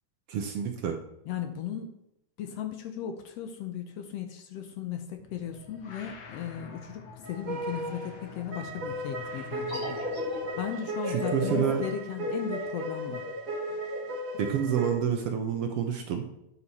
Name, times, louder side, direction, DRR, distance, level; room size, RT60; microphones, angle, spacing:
voice 1, 0.3-1.0 11.1-11.8 14.4-16.3, right 8 dB, 70° right, 4 dB, 1.5 m, -28 dB
voice 2, 1.3-2.0 2.4-10.0 10.6-13.2, left 9 dB, 70° left, 6 dB, 1.7 m, -36 dB
sound 1, 5.2-10.7, left 5 dB, 55° left, 1.3 m, -47 dB
sound 2, 7.2-14.9, right 1 dB, 45° right, 1.0 m, -36 dB
sound 3, 9.7-15.0, left 2 dB, 40° left, 3.2 m, -37 dB
9.3 x 5.8 x 4.2 m, 0.85 s
omnidirectional pair, 3.3 m